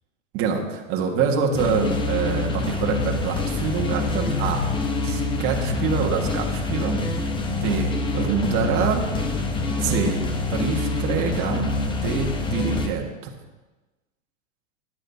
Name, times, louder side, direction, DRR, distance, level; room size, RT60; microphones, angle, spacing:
voice 1, 0.3-4.7 5.0-7.0 7.5-9.1 9.8-13.3, right 6 dB, 30° right, 1 dB, 1.5 m, -26 dB
sound 1, 1.3-12.9, left 3 dB, 10° left, 0.8 m, -26 dB
13.5 x 10.0 x 2.8 m, 1.2 s
hypercardioid pair, 140°, 42 cm